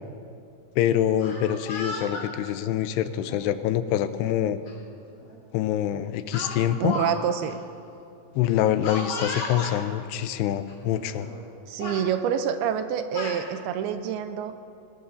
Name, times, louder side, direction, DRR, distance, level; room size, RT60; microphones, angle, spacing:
voice 1, 0.8-4.6 5.5-7.0 8.4-11.3, left 11 dB, 85° left, 11 dB, 2.7 m, -25 dB
Speech, 1.2-2.3 3.2-3.4 4.7-4.8 5.1-5.4 6.3-7.2 7.4-7.5 8.8-9.8 10.7-10.8 11.1-11.5 11.8-12.0 12.8-13.4, left 2 dB, 50° left, 4.7 m, -34 dB
voice 2, 6.8-7.6 11.7-14.5, right 8 dB, 80° right, 9 dB, 2.5 m, -27 dB
23.0 x 19.5 x 2.7 m, 2.6 s
omnidirectional pair, 4.8 m